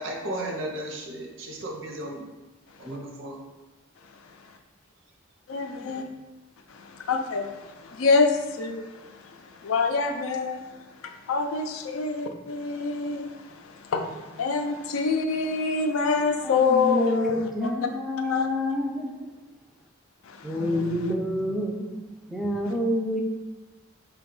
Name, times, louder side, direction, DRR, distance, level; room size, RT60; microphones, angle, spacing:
voice 1, 0.0-2.2 2.8-3.4 5.7-6.2, right 1 dB, 65° right, 0 dB, 0.7 m, -35 dB
voice 2, 5.5-6.0 6.7-17.5 18.3-18.5 20.2-21.1 22.7-22.8, left 4 dB, 80° left, 5 dB, 0.4 m, -27 dB
voice 3, 16.4-19.4 20.4-23.2, left 1 dB, ahead, 0 dB, 0.3 m, -28 dB
3.9 x 2.2 x 3.7 m, 1.1 s
head